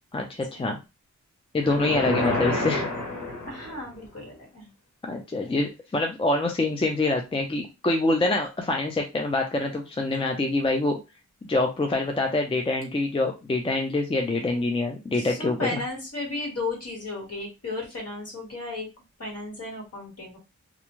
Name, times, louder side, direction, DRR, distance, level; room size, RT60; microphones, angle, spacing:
voice 1, 0.1-0.8 1.5-2.9 5.0-11.0 11.4-15.8, left 2 dB, 20° left, 3 dB, 0.4 m, -25 dB
sound 1, 1.6-3.9, left 2 dB, 80° left, 1.0 m, -28 dB
voice 2, 3.4-4.7 14.4-14.7 15.1-18.9 19.2-20.4, left 2 dB, 55° left, -1 dB, 1.5 m, -35 dB
2.5 x 2.2 x 3.0 m, 0.26 s
wide cardioid pair, 75°, 30 cm